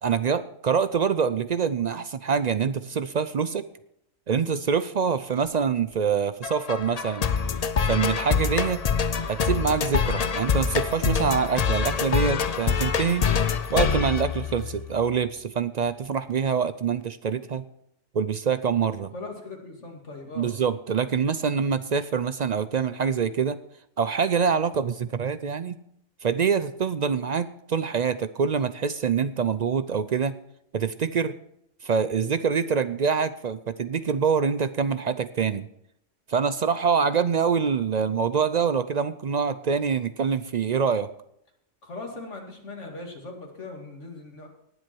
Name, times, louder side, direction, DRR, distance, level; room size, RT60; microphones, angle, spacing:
voice 1, 0.0-3.7 4.3-7.3 7.8-8.8 9.3-13.3 13.7-17.6 18.1-19.1 20.4-23.6 24.0-25.8 26.2-30.3 30.7-31.4 31.8-35.7 36.3-41.1, right 6 dB, 55° right, 13 dB, 0.4 m, -25 dB
sound 1, 6.4-15.0, left 6 dB, 45° left, 0.5 m, -25 dB
voice 2, 19.1-20.5 41.8-44.5, left 2 dB, 75° left, 1 dB, 2.7 m, -39 dB
19.0 x 7.8 x 4.5 m, 0.74 s
omnidirectional pair, 1.2 m